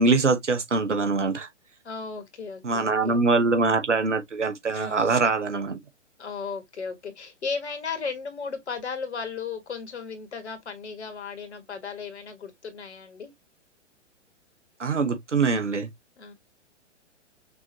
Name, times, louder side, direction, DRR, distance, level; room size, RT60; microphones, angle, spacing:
voice 1, 0.0-1.5 2.6-5.8 14.8-15.9, right 3 dB, 75° right, 1.2 m, -23 dB
voice 2, 1.8-3.2 4.7-5.2 6.2-13.3 16.2-16.3, left 5 dB, 65° left, 1.9 m, -35 dB
6.1 x 2.8 x 2.9 m
figure-of-eight pair, 120°, 36 cm